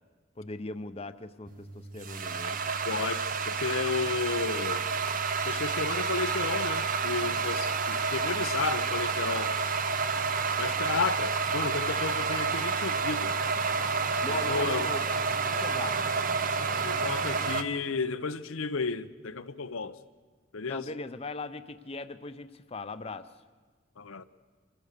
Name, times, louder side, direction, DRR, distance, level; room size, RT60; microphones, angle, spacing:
voice 1, 0.4-2.6 14.2-15.0 15.6-16.0 20.7-23.3, left 3 dB, 30° left, 0.6 m, -39 dB
sound 1, 1.5-17.6, right 5 dB, 45° right, 0.7 m, -29 dB
voice 2, 2.9-4.9 5.4-9.6 10.6-13.3 14.3-14.9 16.8-20.0 20.5-20.8 24.0-24.2, left 4 dB, 90° left, 0.8 m, -32 dB
25.5 x 16.0 x 6.7 m
head